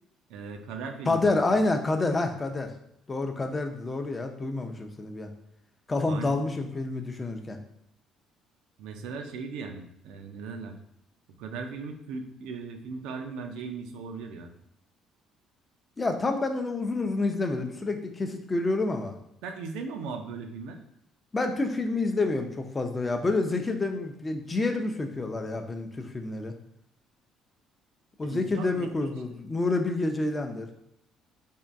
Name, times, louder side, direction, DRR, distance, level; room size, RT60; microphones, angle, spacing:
voice 1, 0.3-1.3 6.1-6.4 8.8-10.7 11.4-14.5 19.4-20.8 28.2-29.1, right 4 dB, 80° right, 5 dB, 0.4 m, -38 dB
voice 2, 1.1-2.7 3.1-5.3 5.9-7.6 16.0-19.2 21.3-26.5 28.2-30.7, left 2 dB, 25° left, 4 dB, 0.4 m, -28 dB
3.5 x 2.2 x 2.5 m, 0.74 s
supercardioid pair, 80°, 0 cm